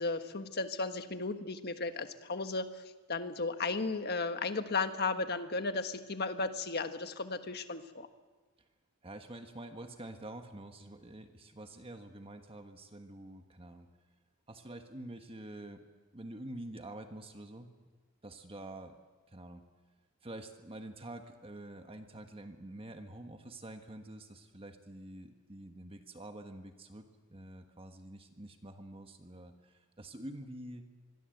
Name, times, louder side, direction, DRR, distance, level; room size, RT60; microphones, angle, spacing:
voice 1, 0.0-2.8 3.1-8.1, left 3 dB, 45° left, 8 dB, 1.4 m, -35 dB
voice 2, 9.0-13.9 14.5-15.8 16.1-17.7 18.2-19.0 19.3-19.6 20.2-30.8, right 1 dB, 25° right, 6 dB, 1.5 m, -47 dB
25.5 x 22.0 x 8.0 m, 1.4 s
head